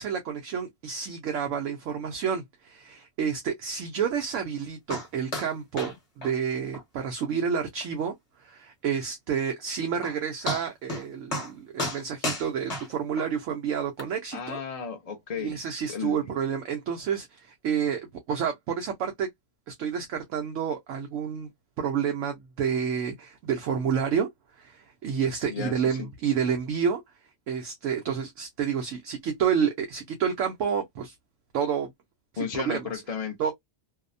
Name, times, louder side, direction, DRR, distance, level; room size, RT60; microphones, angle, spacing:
voice 1, 0.0-8.1 8.4-14.6 15.4-18.0 18.3-19.3 19.7-21.5 21.8-24.3 24.6-27.0 27.5-31.1 31.5-31.9 32.3-32.9 33.4-33.5, right 7 dB, 70° right, 0.9 m, -29 dB
sound 1, 4.9-5.1 5.3-5.5 5.8-5.9 6.2-6.3 6.7-6.8 7.2-7.3 7.8-7.9 9.6-9.7 10.0-10.2 10.5-11.0 11.3-11.5 11.8-13.3 14.0-14.1, left 1 dB, 30° left, 1.0 m, -32 dB
voice 2, 14.3-16.4 25.5-26.1 32.4-33.4, left 6 dB, 80° left, 0.3 m, -34 dB
2.7 x 2.0 x 2.5 m
omnidirectional pair, 1.4 m